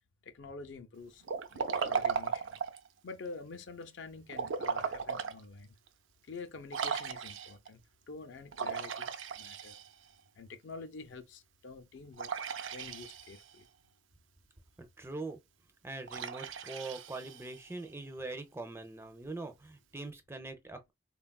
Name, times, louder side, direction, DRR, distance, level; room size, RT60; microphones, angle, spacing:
voice 1, 0.2-1.2 1.5-2.6 3.0-5.8 6.3-9.8 10.4-12.3 12.7-13.7, left 4 dB, 70° left, 0.5 m, -47 dB
Liquid, 1.2-2.9 4.3-5.4 5.9-6.0 6.7-7.7 8.5-10.1 12.2-13.5 16.1-17.7, right 6 dB, 85° right, 0.4 m, -36 dB
voice 2, 14.8-15.4 15.8-20.9, right 2 dB, 15° right, 0.4 m, -42 dB
3.4 x 2.3 x 2.2 m
head